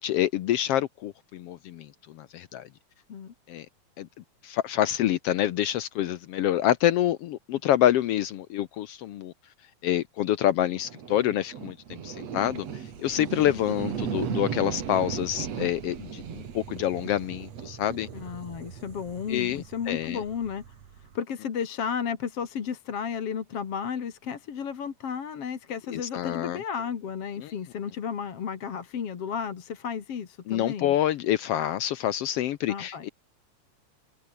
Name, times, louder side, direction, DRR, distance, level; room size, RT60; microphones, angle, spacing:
voice 1, 0.0-2.7 3.5-3.7 4.0-4.1 4.4-9.3 9.8-18.1 19.3-20.2 25.9-26.6 27.4-27.5 30.5-33.1, left 12 dB, 75° left, 1.4 m, -27 dB
sound 1, 10.8-21.2, right 8 dB, 55° right, 3.3 m, -37 dB
voice 2, 18.1-20.6 21.1-31.0 32.7-33.0, left 7 dB, 50° left, 2.9 m, -33 dB
omnidirectional pair, 3.6 m